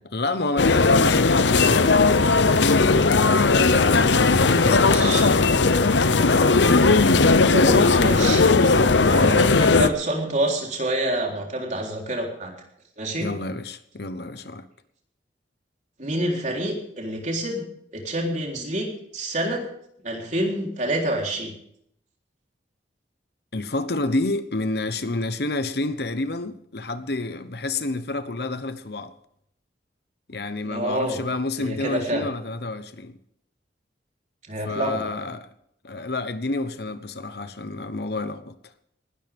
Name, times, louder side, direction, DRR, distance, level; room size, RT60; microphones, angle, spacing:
voice 1, 0.0-6.5 6.9-7.2 13.2-14.7 23.5-29.1 30.3-33.2 34.6-35.5 35.8-38.5, left 2 dB, 60° left, 1.1 m, -29 dB
sound 1, 0.6-9.9, left 3 dB, 85° left, 0.9 m, -17 dB
voice 2, 4.6-5.3 7.5-8.4 9.1-12.5 13.0-13.3 16.0-17.6 17.9-19.6 20.0-21.5 30.6-31.2 31.6-32.2 34.5-35.0, right 1 dB, 45° right, 3.8 m, -27 dB
19.5 x 13.0 x 3.6 m
head